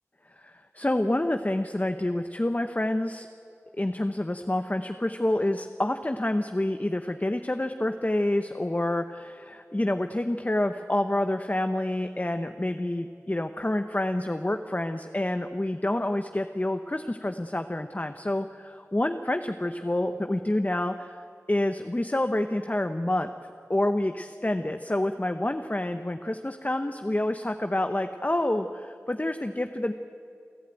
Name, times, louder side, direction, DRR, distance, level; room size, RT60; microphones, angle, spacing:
voice 1, 0.4-3.3 3.8-23.3 23.7-29.9, left 1 dB, 30° left, 7 dB, 0.8 m, -28 dB
29.5 x 12.0 x 9.0 m, 2.4 s
wide cardioid pair, 45°, 5 cm